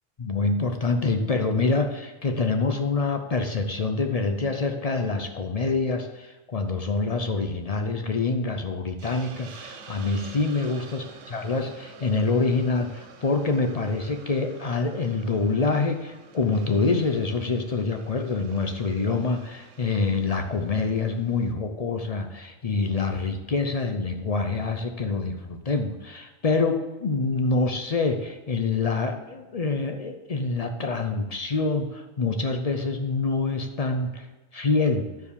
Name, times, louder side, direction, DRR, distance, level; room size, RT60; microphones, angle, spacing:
voice 1, 0.2-11.0 11.3-34.3 34.5-35.1, left 3 dB, 55° left, 6 dB, 0.4 m, -26 dB
Hiss, 9.0-21.5, right 6 dB, 60° right, 1.1 m, -49 dB
12.0 x 4.8 x 6.8 m, 1.2 s
omnidirectional pair, 1.6 m